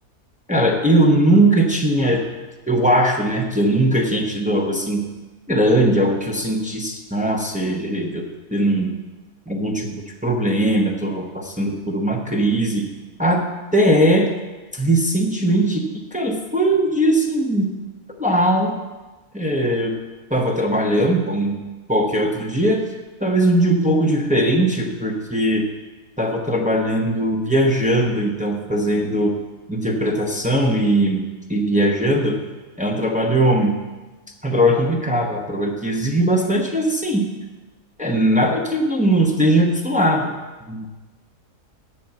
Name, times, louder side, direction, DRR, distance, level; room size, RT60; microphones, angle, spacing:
voice 1, 0.5-2.2 2.7-5.1 5.5-8.2 8.5-8.9 9.5-12.9 13.2-13.4 13.7-14.3 14.7-17.8 18.2-18.7 19.3-19.9 20.3-21.6 21.9-22.8 23.2-25.7 26.2-29.3 29.7-31.2 31.5-32.4 32.8-33.8 34.4-37.3 38.0-40.3 40.7-40.9, right 1 dB, 10° right, 1 dB, 0.5 m, -19 dB
7.9 x 5.7 x 7.8 m, 1.2 s
omnidirectional pair, 1.7 m